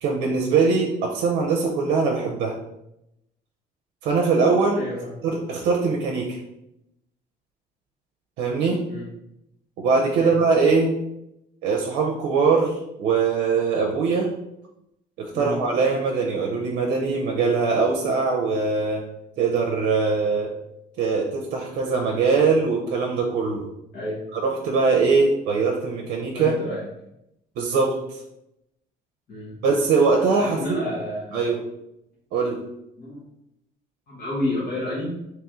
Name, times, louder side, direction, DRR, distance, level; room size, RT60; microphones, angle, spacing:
voice 1, 0.0-2.5 4.0-4.8 5.2-6.4 8.4-8.8 9.8-10.9 11.6-14.3 15.2-19.0 19.4-20.5 21.0-23.6 24.3-26.5 27.6-28.2 29.6-30.6 31.3-31.6 32.3-32.6, right 4 dB, 85° right, 0 dB, 0.6 m, -22 dB
voice 2, 4.7-5.2 8.9-9.1 10.1-10.4 15.3-15.6 23.9-24.2 26.3-26.8 29.3-29.6 30.4-31.3 33.0-33.2 34.1-35.2, left 1 dB, 60° left, -7 dB, 1.2 m, -30 dB
3.0 x 2.9 x 3.6 m, 0.84 s
cardioid pair, 110°, 17 cm